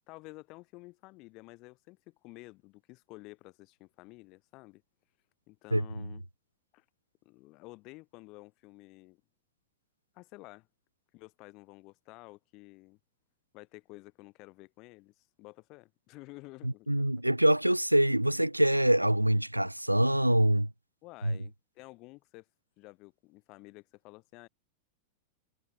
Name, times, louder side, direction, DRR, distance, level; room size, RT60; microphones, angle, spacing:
voice 1, 0.0-4.8 5.5-6.2 6.7-6.8 7.2-9.2 10.1-10.7 11.1-13.0 13.5-17.1 21.0-22.5 22.8-24.5, left 23 dB, 40° left, 4.5 m, -51 dB
voice 2, 5.7-6.1 16.6-20.7 21.2-21.4, right 1 dB, 90° right, 0.9 m, -25 dB
figure-of-eight pair, 90°, 0 cm